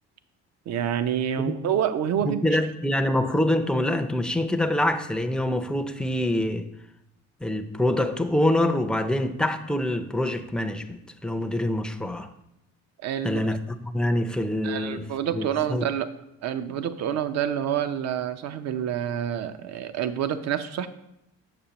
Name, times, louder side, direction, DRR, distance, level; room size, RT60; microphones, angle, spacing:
voice 1, 0.7-2.4 13.0-13.4 14.6-16.1 16.4-20.9, right 9 dB, 55° right, 11 dB, 0.6 m, -27 dB
voice 2, 2.2-6.7 7.4-12.3 13.2-15.0 15.3-15.8, left 1 dB, 5° left, 7 dB, 0.4 m, -25 dB
6.8 x 6.6 x 2.9 m, 0.83 s
supercardioid pair, 80°, 31 cm